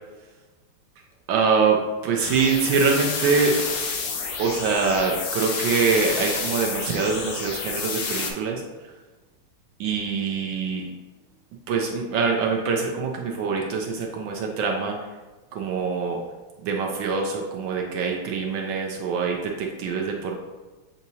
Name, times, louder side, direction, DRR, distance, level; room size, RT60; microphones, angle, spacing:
voice 1, 1.3-3.6 4.4-8.6 9.8-10.9 11.7-15.0 15.5-16.2 16.6-20.4, right 5 dB, 75° right, 1 dB, 1.2 m, -24 dB
sound 1, 2.2-8.3, left 4 dB, 80° left, 0.7 m, -29 dB
7.0 x 2.7 x 2.7 m, 1.2 s
omnidirectional pair, 2.3 m